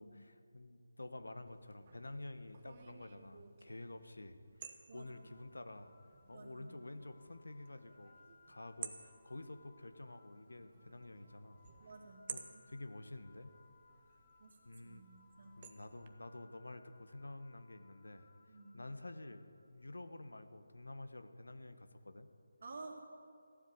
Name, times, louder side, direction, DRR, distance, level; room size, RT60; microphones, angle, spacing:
voice 1, 0.0-5.9 6.3-8.1 8.5-11.6 12.3-13.5 14.6-15.0 15.6-18.3 18.7-19.4 19.7-22.3, left 2 dB, 85° left, 10 dB, 1.2 m, -50 dB
sound 1, 1.5-16.1, right 7 dB, 30° right, 1.0 m, -55 dB
sound 2, 4.9-20.0, left 4 dB, 5° right, 2.2 m, -68 dB
voice 2, 4.9-5.3 6.3-6.7 11.8-12.2 12.5-12.6 14.4-14.6 14.8-15.1 15.4-15.6 18.5-18.8 22.6-23.0, right 3 dB, 50° right, 1 dB, 2.6 m, -52 dB
15.0 x 7.6 x 9.5 m, 2.3 s
figure-of-eight pair, 160°, 0 cm